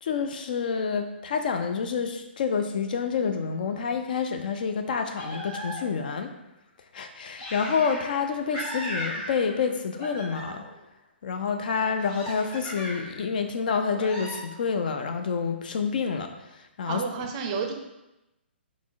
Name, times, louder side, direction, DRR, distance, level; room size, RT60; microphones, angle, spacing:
voice 1, 0.0-6.3 6.9-10.7 11.2-17.0, left 5 dB, 50° left, 6 dB, 0.3 m, -28 dB
sound 1, 5.1-6.1 7.4-8.2 8.5-9.7 10.0-10.8 12.0-13.2 13.9-14.4, equal, 30° left, 1.1 m, -37 dB
voice 2, 16.9-17.7, right 6 dB, 30° right, 3 dB, 0.4 m, -30 dB
5.9 x 2.0 x 2.4 m, 0.96 s
figure-of-eight pair, 130°, 6 cm